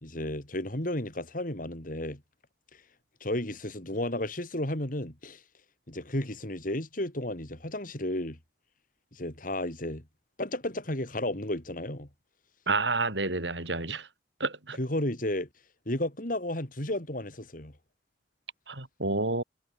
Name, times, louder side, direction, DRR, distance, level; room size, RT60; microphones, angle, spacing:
voice 1, 0.0-2.2 3.2-5.4 5.9-8.4 9.1-10.0 10.4-12.1 14.8-15.5 15.9-17.7, left 1 dB, 50° left, 4.6 m, -33 dB
voice 2, 12.7-14.1 14.4-14.8 18.7-19.4, right 3 dB, 85° right, 6.2 m, -29 dB
head